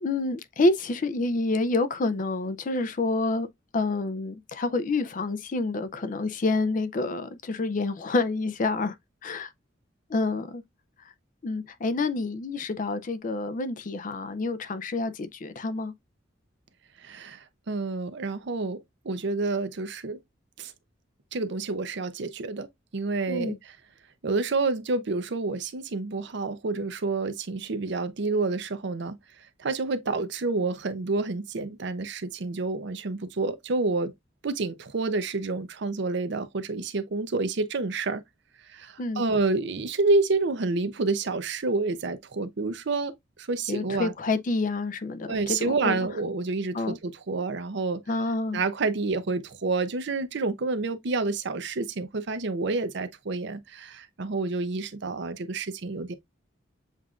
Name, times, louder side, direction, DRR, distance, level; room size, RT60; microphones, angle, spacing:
voice 1, 0.0-3.5 3.7-8.9 9.2-9.5 10.1-10.6 11.4-15.9 23.3-23.6 39.0-39.2 43.7-46.1 46.7-47.0 48.1-48.6, left 3 dB, 45° left, 0.4 m, -28 dB
voice 2, 17.0-20.2 20.6-20.7 21.3-22.7 22.9-23.5 24.2-29.2 29.6-34.1 34.4-38.2 38.7-43.1 43.4-44.1 45.3-48.0 48.5-56.1, right 3 dB, 60° right, 0.6 m, -28 dB
7.4 x 2.5 x 2.3 m
head